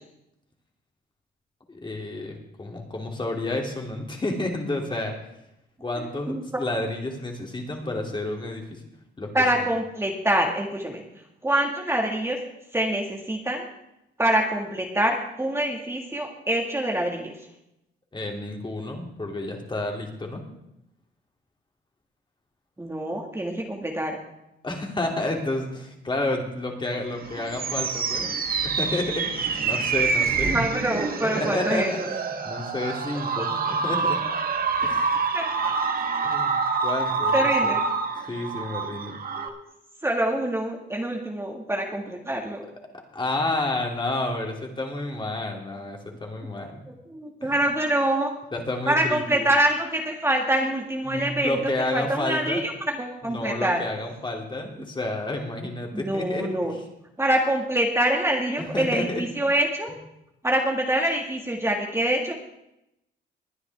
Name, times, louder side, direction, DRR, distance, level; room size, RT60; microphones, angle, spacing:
voice 1, 1.7-5.1 5.8-8.8 9.2-9.3 9.5-9.7 18.1-20.4 24.6-30.6 31.2-34.2 34.8-35.1 36.2-36.5 36.8-37.8 38.3-39.2 43.1-46.8 47.4-47.5 48.5-49.5 51.1-52.6 53.2-56.8 58.6-59.2, left 2 dB, 25° left, 1 dB, 2.9 m, -30 dB
voice 2, 6.0-6.6 9.3-11.0 11.4-12.4 12.7-13.7 14.2-17.3 22.8-24.2 30.4-31.9 35.3-35.5 37.3-37.8 39.4-39.6 40.0-42.7 46.9-48.3 48.9-51.6 51.9-53.8 54.8-54.9 55.9-56.8 57.2-59.9 60.4-62.3, right 1 dB, 15° right, 1 dB, 1.9 m, -25 dB
sound 1, 27.1-39.5, right 5 dB, 50° right, 1.6 m, -26 dB
20.5 x 9.6 x 3.6 m, 0.84 s
cardioid pair, 90°, 20 cm